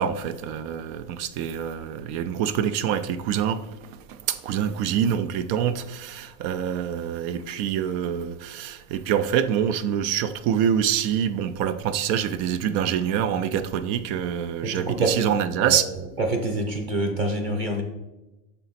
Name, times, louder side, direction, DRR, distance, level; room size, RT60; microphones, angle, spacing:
voice 1, 0.0-15.9, right 9 dB, 90° right, 1.0 m, -26 dB
voice 2, 14.6-15.3 15.6-15.8 16.2-17.8, right 2 dB, 40° right, 0.8 m, -26 dB
11.5 x 3.9 x 4.1 m
omnidirectional pair, 1.5 m